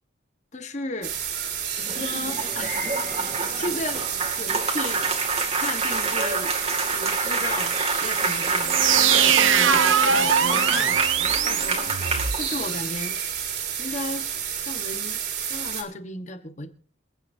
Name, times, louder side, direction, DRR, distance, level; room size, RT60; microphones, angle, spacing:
voice 1, 0.5-1.1 1.8-4.1 4.3-5.1 5.5-6.6 6.9-13.2 13.8-14.3 14.6-15.2 15.5-16.7, left 2 dB, 35° left, 8 dB, 1.3 m, -35 dB
sound 1, 1.0-15.8, right 8 dB, 55° right, 3.5 m, -30 dB
sound 2, 1.8-12.8, right 3 dB, 30° right, 2.3 m, -28 dB
sound 3, 8.6-12.4, right 7 dB, 80° right, 0.9 m, -21 dB
27.0 x 9.8 x 2.7 m, 0.44 s
head